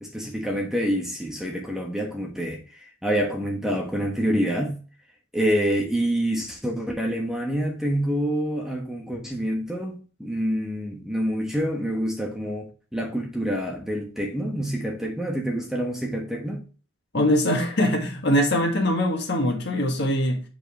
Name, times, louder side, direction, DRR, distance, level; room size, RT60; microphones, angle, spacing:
voice 1, 0.0-4.8 5.3-16.6, equal, ahead, 1.2 m, -27 dB
voice 2, 17.1-20.4, equal, 50° left, 1.6 m, -22 dB
7.6 x 5.1 x 3.0 m
head